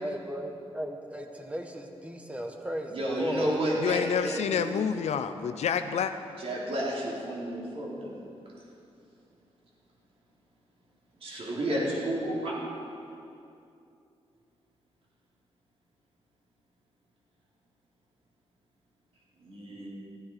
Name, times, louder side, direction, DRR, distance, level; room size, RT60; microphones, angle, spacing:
voice 1, 0.0-2.9 3.2-3.5, equal, 10° right, 3 dB, 1.4 m, -36 dB
voice 2, 2.9-4.7 6.4-8.1 11.2-12.6 19.4-19.9, right 1 dB, 60° right, -5 dB, 3.8 m, -31 dB
voice 3, 3.8-6.1, left 7 dB, 90° left, 9 dB, 0.6 m, -28 dB
15.5 x 15.0 x 4.8 m, 2.6 s
wide cardioid pair, 120°, 11 cm